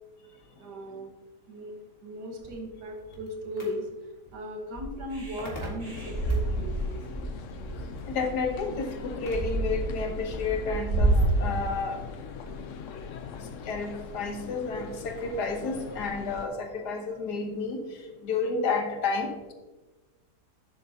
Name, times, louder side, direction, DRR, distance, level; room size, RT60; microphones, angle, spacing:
voice 1, 0.6-1.1 1.5-1.7 2.0-7.0, equal, 80° right, 2 dB, 1.9 m, -37 dB
sound 1, 2.3-9.7, left 1 dB, 35° left, 2.0 m, -46 dB
sound 2, 4.8-11.3, right 2 dB, 60° right, 2.9 m, -29 dB
sound 3, 5.8-16.5, left 6 dB, 60° left, 0.9 m, -41 dB
voice 2, 8.1-12.0 13.4-19.5, left 4 dB, 75° left, 5 dB, 1.6 m, -31 dB
10.5 x 7.5 x 2.8 m, 1.2 s
omnidirectional pair, 1.8 m